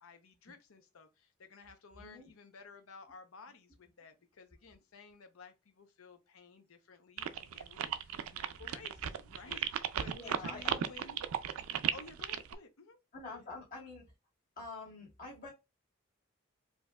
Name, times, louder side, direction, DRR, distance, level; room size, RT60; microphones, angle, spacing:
voice 1, 0.0-1.1 1.4-9.7 10.0-11.2 11.9-13.0 13.3-13.4, left 4 dB, 85° left, 0.7 m, -54 dB
voice 2, 2.0-2.3 10.0-10.8 13.1-14.1 14.6-15.5, left 3 dB, 40° left, 1.9 m, -46 dB
sound 1, 7.2-12.5, right 9 dB, 85° right, 0.4 m, -35 dB
4.5 x 2.7 x 2.2 m
head